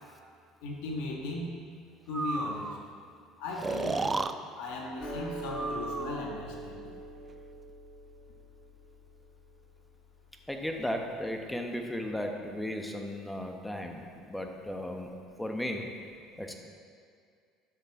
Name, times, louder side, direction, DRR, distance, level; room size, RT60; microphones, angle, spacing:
voice 1, 0.6-1.5 2.1-2.7 3.4-4.2 4.6-6.9, left 2 dB, 75° left, 0 dB, 1.6 m, -37 dB
Breathing, 2.1-2.8 3.6-4.3 5.5-6.3, right 3 dB, 20° right, 0.4 m, -33 dB
sound 1, 5.0-11.5, right 1 dB, 50° left, 1.6 m, -44 dB
voice 2, 10.5-15.1 15.4-15.9 16.4-16.5, left 1 dB, 5° left, 3 dB, 1.1 m, -35 dB
12.0 x 6.6 x 3.7 m, 2.2 s
hypercardioid pair, 80°, 0 cm